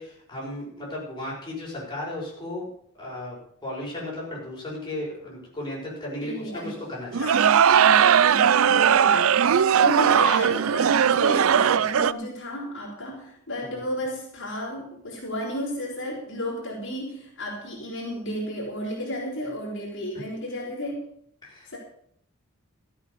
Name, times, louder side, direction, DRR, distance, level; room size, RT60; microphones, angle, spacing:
voice 1, 0.0-2.7 3.0-6.3 6.6-7.3 13.6-13.8 21.4-21.8, left 1 dB, 20° left, -6 dB, 6.0 m, -35 dB
voice 2, 6.2-6.8 7.2-21.0 21.7-21.8, equal, 60° left, -3 dB, 4.7 m, -33 dB
sound 1, 7.1-12.1, right 8 dB, 65° right, 0.4 m, -19 dB
14.0 x 8.5 x 6.9 m, 0.67 s
head